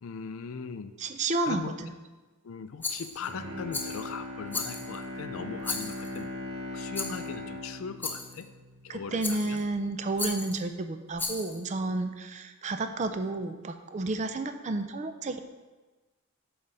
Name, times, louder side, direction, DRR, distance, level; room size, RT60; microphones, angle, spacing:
voice 1, 0.0-0.9 1.4-1.8 2.4-6.3 6.7-8.5 8.8-9.6, left 5 dB, 70° left, 10 dB, 0.4 m, -39 dB
voice 2, 1.0-1.9 8.9-15.4, right 2 dB, 35° right, 8 dB, 0.4 m, -31 dB
Rattle, 2.8-3.3 3.7-4.1 4.5-5.0 5.6-6.2 6.9-7.3 8.0-8.4 9.2-9.6 10.2-10.6 11.1-11.6, left 3 dB, 10° left, 0.6 m, -35 dB
Bowed string instrument, 3.1-9.4 9.8-9.9, left 1 dB, 80° right, 1.0 m, -39 dB
7.1 x 3.9 x 5.5 m, 1.2 s
head